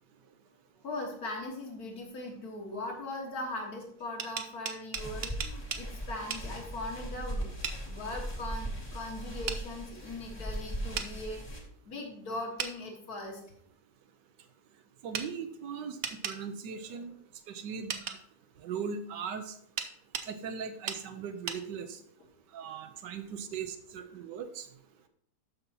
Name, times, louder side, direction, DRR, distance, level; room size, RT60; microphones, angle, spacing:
voice 1, 0.8-7.5 7.8-13.4, left 2 dB, 60° left, 1 dB, 2.1 m, -40 dB
sound 1, 4.0-5.9 6.3-6.5 7.6-7.8 9.5-9.6 11.0-11.1 12.6-12.7 15.1-15.3 16.0-16.4 17.9-18.2 19.8-20.3 20.9-21.0 21.5-21.6, right 7 dB, 65° right, 0.6 m, -35 dB
sound 2, 4.9-11.6, right 1 dB, 15° left, 1.1 m, -39 dB
voice 2, 15.0-17.1 17.5-18.2 18.6-19.6 20.3-22.0 22.5-24.7, right 6 dB, 90° right, 8 dB, 1.4 m, -39 dB
13.0 x 5.4 x 2.9 m, 0.67 s
omnidirectional pair, 1.8 m